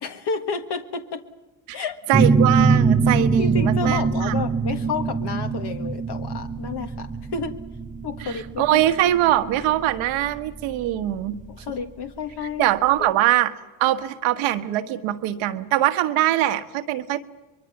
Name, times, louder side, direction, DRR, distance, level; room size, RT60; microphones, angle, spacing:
voice 1, 0.0-1.2 1.7-2.0 3.4-7.6 8.0-8.8 11.5-12.7 13.0-13.1, left 5 dB, 55° left, 7 dB, 1.6 m, -30 dB
sound 1, 2.1-11.5, right 4 dB, 15° right, 0.9 m, -22 dB
voice 2, 2.1-4.4 8.2-11.4 12.6-17.2, right 13 dB, 90° right, 8 dB, 1.5 m, -22 dB
23.5 x 22.5 x 7.3 m, 1.1 s
cardioid pair, 90°, 47 cm